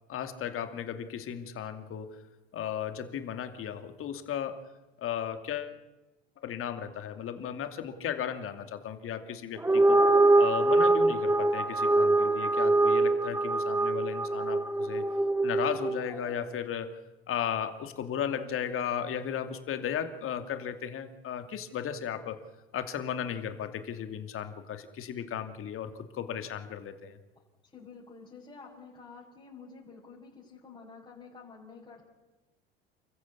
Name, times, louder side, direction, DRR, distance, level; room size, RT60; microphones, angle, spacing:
voice 1, 0.1-2.3 2.5-4.7 5.0-5.7 6.4-10.0 10.4-15.1 15.4-17.0 17.3-22.4 22.7-27.2, left 9 dB, 45° left, 8 dB, 2.5 m, -35 dB
sound 1, 9.6-16.1, right 2 dB, 10° right, 1.0 m, -24 dB
voice 2, 27.7-32.0, left 4 dB, 15° left, -6 dB, 6.1 m, -49 dB
28.5 x 14.5 x 8.5 m, 1.1 s
hypercardioid pair, 70°, 29 cm